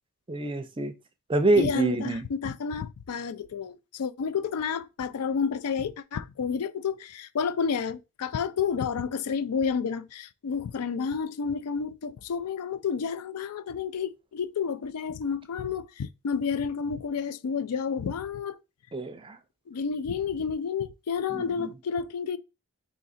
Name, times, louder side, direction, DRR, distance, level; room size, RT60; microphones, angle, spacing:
voice 1, 0.3-0.9 1.3-2.2 18.9-19.4 21.3-21.7, right 2 dB, 25° right, 0.5 m, -26 dB
voice 2, 1.6-18.6 19.7-22.4, left 6 dB, 80° left, 0.4 m, -30 dB
3.8 x 2.8 x 4.1 m
head